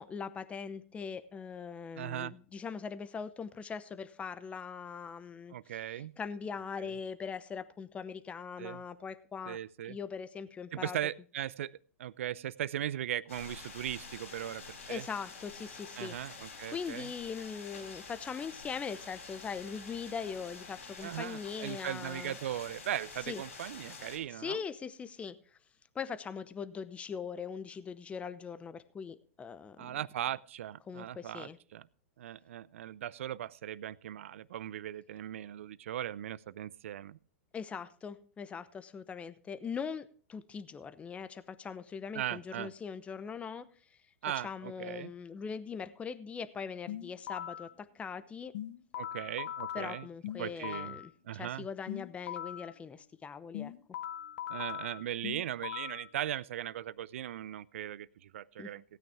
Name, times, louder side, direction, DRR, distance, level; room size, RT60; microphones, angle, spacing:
voice 1, 0.0-5.5 5.9-9.6 9.8-11.0 14.9-16.2 16.5-22.4 23.3-23.4 24.4-25.4 25.9-30.0 30.9-31.6 37.5-43.7 44.4-48.5 49.7-53.7 58.6-58.7, left 6 dB, 15° left, 13 dB, 0.8 m, -41 dB
voice 2, 2.0-2.3 5.5-6.1 6.8-6.9 8.6-8.8 9.5-10.0 10.7-15.1 16.0-17.1 21.0-24.6 29.8-31.9 32.2-37.2 42.1-42.7 44.2-45.1 48.9-50.1 50.4-51.0 51.2-51.7 54.5-58.8, right 11 dB, 75° right, 20 dB, 0.5 m, -38 dB
sound 1, 13.3-24.2, left 4 dB, 85° left, 4.5 m, -48 dB
sound 2, 46.9-47.7 48.5-51.1 51.9-52.7 53.5-56.1, left 10 dB, 60° left, 0.8 m, -40 dB
16.5 x 9.2 x 3.5 m, 0.42 s
hypercardioid pair, 120°, 7 cm